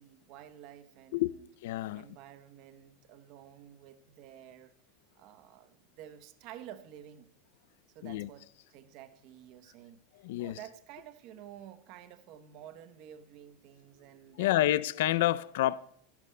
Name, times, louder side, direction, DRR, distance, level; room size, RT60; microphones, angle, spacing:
voice 1, 0.0-1.5 1.9-4.8 5.1-7.3 7.9-10.0 10.4-14.7, right 11 dB, 45° right, 0.8 m, -51 dB
voice 2, 1.6-2.0 8.0-8.3 10.2-10.6 14.4-15.8, left 14 dB, 70° left, 0.4 m, -28 dB
23.5 x 11.5 x 2.2 m
supercardioid pair, 165°, 0 cm